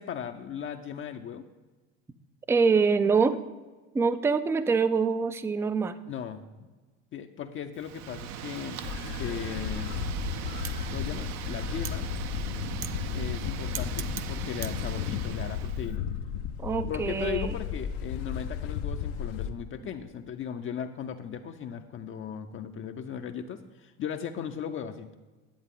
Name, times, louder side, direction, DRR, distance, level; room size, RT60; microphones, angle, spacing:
voice 1, 0.0-1.4 6.1-6.7 7.1-8.8 9.2-10.0 10.9-12.1 13.1-16.0 16.9-25.2, left 8 dB, 35° left, 6 dB, 0.6 m, -37 dB
voice 2, 2.5-3.4 3.9-6.0 16.6-17.5, right 5 dB, 10° right, 13 dB, 0.3 m, -25 dB
Wind, 7.8-15.9, right 10 dB, 55° right, 0.6 m, -38 dB
sound 1, 8.8-19.5, left 8 dB, 75° left, 0.7 m, -34 dB
10.5 x 7.9 x 3.7 m, 1.3 s
supercardioid pair, 90°, 34 cm